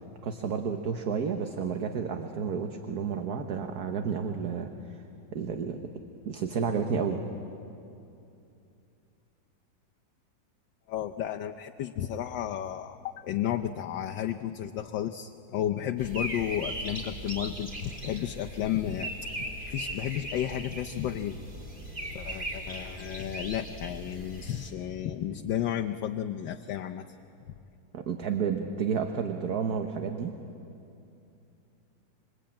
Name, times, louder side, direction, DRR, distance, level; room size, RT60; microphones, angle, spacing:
voice 1, 0.2-5.0 5.3-5.8 6.2-7.2 27.9-30.3, right 6 dB, 55° right, 5 dB, 1.6 m, -31 dB
voice 2, 10.9-19.1 19.4-21.4 22.1-27.1, left 11 dB, 70° left, 5 dB, 1.4 m, -33 dB
sound 1, 16.0-24.7, right 1 dB, 25° right, 3.5 m, -38 dB
26.5 x 24.0 x 8.8 m, 2.7 s
omnidirectional pair, 2.2 m